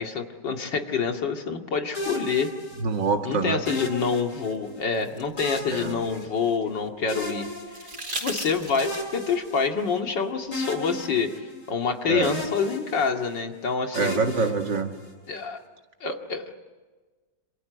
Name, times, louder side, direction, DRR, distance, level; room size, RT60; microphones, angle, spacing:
voice 1, 0.0-2.5 3.2-7.5 8.2-11.3 11.7-14.2 15.3-15.6 16.0-16.5, left 5 dB, 80° left, 4 dB, 2.8 m, -27 dB
sound 1, 1.9-3.1 3.7-4.8 5.4-6.7 7.1-8.3 8.8-10.2 10.5-11.9 12.2-13.4 13.9-15.3, left 1 dB, 55° left, 8.4 m, -36 dB
voice 2, 2.8-3.6 5.7-6.0 12.1-12.3 13.9-14.9, right 4 dB, 80° right, 5 dB, 2.7 m, -25 dB
sound 2, 4.5-6.8 7.7-9.2 10.9-11.0, right 2 dB, 50° right, 4.6 m, -37 dB
27.0 x 27.0 x 8.1 m, 1.3 s
omnidirectional pair, 1.9 m